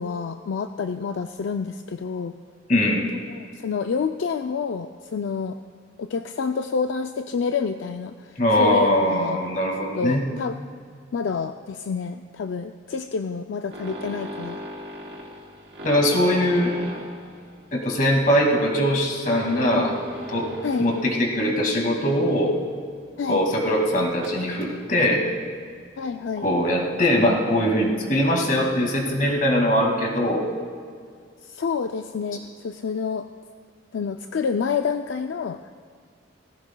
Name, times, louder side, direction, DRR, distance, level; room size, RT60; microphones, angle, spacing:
voice 1, 0.0-2.3 3.3-5.6 6.0-9.4 10.0-10.6 11.1-14.6 19.7-19.9 20.6-20.9 23.2-23.4 26.0-26.5 31.4-33.3 33.9-35.7, left 5 dB, 70° left, 7 dB, 0.4 m, -28 dB
voice 2, 2.7-3.0 8.4-10.2 15.8-16.7 17.7-19.9 20.3-20.5 20.8-22.5 23.3-25.2 26.4-30.4, equal, 45° left, 0 dB, 2.1 m, -21 dB
sound 1, 13.7-21.5 21.8-22.1 22.6-22.7 23.0-23.1 24.1-24.7 26.0-26.2 26.6-27.0 27.8-27.9 28.1-28.2 28.4-28.5, equal, 60° right, 3.4 m, -37 dB
18.5 x 16.0 x 2.2 m, 2.1 s
head